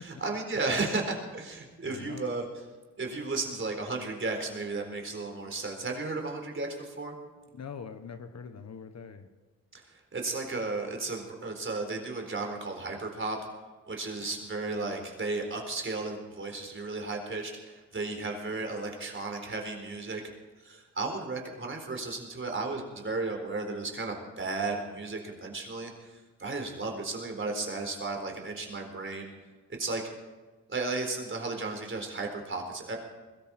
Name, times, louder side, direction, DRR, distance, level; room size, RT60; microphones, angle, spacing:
voice 1, 0.0-2.5 3.0-7.2 9.7-9.8 10.1-13.4 13.9-20.2 20.6-29.3 29.7-30.0 30.7-33.0, right 3 dB, 35° right, 2 dB, 4.2 m, -34 dB
voice 2, 1.8-2.2 7.5-9.3, left 6 dB, 50° left, 9 dB, 1.3 m, -43 dB
21.5 x 13.5 x 4.4 m, 1.3 s
cardioid pair, 80°, 33 cm